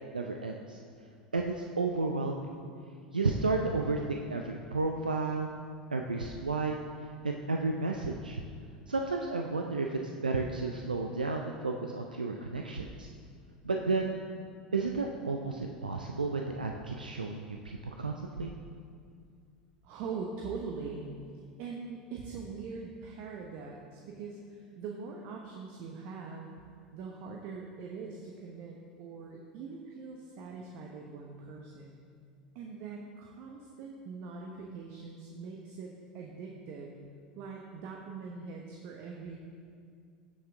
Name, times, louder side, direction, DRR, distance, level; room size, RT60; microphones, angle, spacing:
voice 1, 0.1-0.8 1.3-2.5 3.1-5.5 5.9-6.8 7.2-8.4 8.9-13.1 13.6-14.2 14.7-18.5, right 3 dB, 90° right, 2 dB, 0.5 m, -32 dB
voice 2, 19.8-21.1 21.6-26.5 26.9-32.0 32.5-36.9 37.3-39.4, right 5 dB, 55° right, 0 dB, 1.0 m, -42 dB
16.5 x 6.0 x 3.6 m, 2.2 s
figure-of-eight pair, 80°, 4 cm